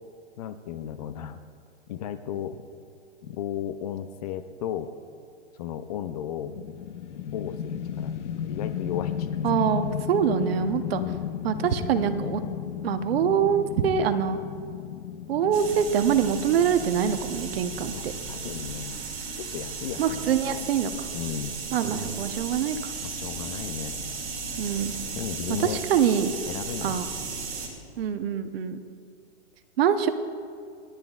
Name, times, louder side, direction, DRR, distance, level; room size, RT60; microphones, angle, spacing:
voice 1, 0.4-1.4 1.9-2.6 3.2-4.9 5.6-6.6 7.3-9.3 11.0-11.2 17.9-19.0 19.5-20.7 21.1-21.6 23.0-24.0 25.2-25.8 26.5-27.0, left 10 dB, 35° left, 10 dB, 0.5 m, -35 dB
sound 1, 6.5-18.7, left 9 dB, 75° left, 0.8 m, -34 dB
voice 2, 9.4-11.0 11.4-12.4 12.8-14.4 15.3-18.1 20.0-20.9 21.7-22.9 24.6-25.0 25.6-26.3 26.8-27.1 28.0-28.8 29.8-30.1, right 8 dB, 55° right, 9 dB, 0.9 m, -24 dB
sound 2, 15.5-27.7, right 4 dB, 25° right, 2.5 m, -35 dB
29.0 x 10.0 x 2.4 m, 2.3 s
hypercardioid pair, 145°, 35 cm